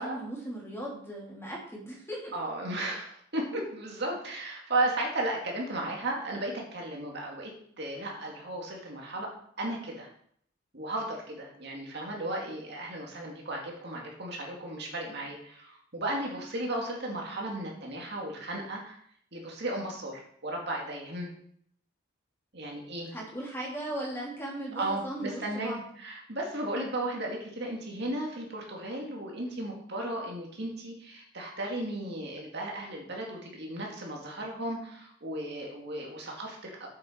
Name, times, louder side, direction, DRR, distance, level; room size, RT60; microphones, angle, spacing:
voice 1, 0.0-2.4 23.1-25.8, right 1 dB, 15° left, -3 dB, 2.6 m, -37 dB
voice 2, 2.3-9.3 9.6-10.1 10.7-19.0 19.3-21.3 22.5-23.1 24.8-36.9, right 1 dB, 60° right, -1 dB, 2.2 m, -35 dB
7.9 x 7.8 x 4.5 m, 0.64 s
head